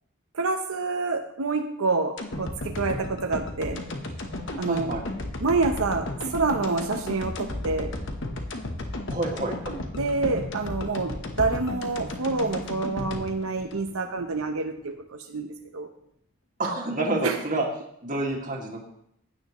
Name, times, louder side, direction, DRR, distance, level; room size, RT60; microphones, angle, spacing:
voice 1, 0.3-3.8 4.5-5.0 5.4-7.9 10.0-15.9 17.2-17.4, right 3 dB, 85° right, 4 dB, 0.8 m, -27 dB
sound 1, 2.2-14.4 14.8-14.9, left 1 dB, 55° left, 1.1 m, -34 dB
voice 2, 4.7-5.0 9.1-9.8 16.6-17.6 18.0-18.9, right 2 dB, 35° right, 0 dB, 2.0 m, -28 dB
15.5 x 9.4 x 3.1 m, 0.74 s
head